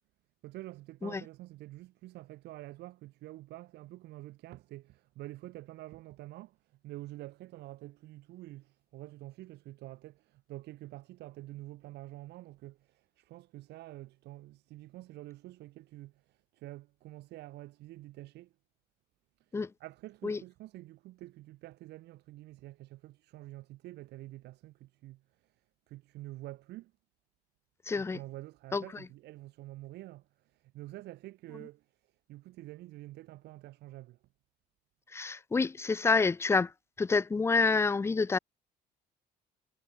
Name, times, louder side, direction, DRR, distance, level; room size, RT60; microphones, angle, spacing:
voice 1, 0.4-18.5 19.5-25.6 25.9-26.9 27.9-31.9 32.3-34.2, right 17 dB, 80° right, 2.3 m, -48 dB
voice 2, 27.9-28.2 28.7-28.8 35.1-36.7 37.0-38.4, left 4 dB, 15° left, 0.5 m, -28 dB
cardioid pair, 110°, 17 cm